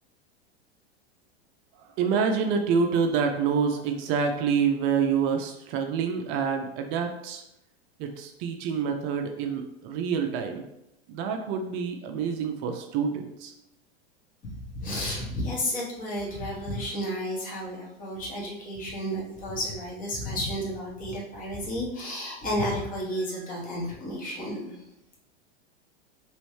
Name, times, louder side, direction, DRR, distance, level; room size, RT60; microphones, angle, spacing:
voice 1, 1.8-7.4 8.0-10.6 11.1-13.5, right 6 dB, 40° right, 5 dB, 0.4 m, -27 dB
voice 2, 14.4-24.8, equal, 25° left, -3 dB, 1.2 m, -32 dB
3.1 x 3.0 x 3.1 m, 0.85 s
hypercardioid pair, 115°, 31 cm